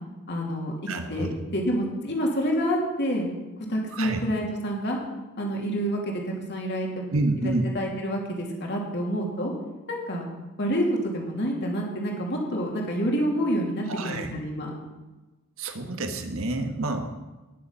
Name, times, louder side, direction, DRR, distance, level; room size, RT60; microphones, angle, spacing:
voice 1, 0.3-0.7 1.1-3.3 3.7-5.0 5.4-7.1 7.4-9.5 9.9-10.2 10.6-14.7, equal, 55° left, -1 dB, 2.8 m, -28 dB
voice 2, 0.9-1.3 3.9-4.2 7.1-7.6 13.9-14.3 15.6-17.1, right 2 dB, 65° right, 5 dB, 1.5 m, -28 dB
19.0 x 7.1 x 5.7 m, 1.1 s
head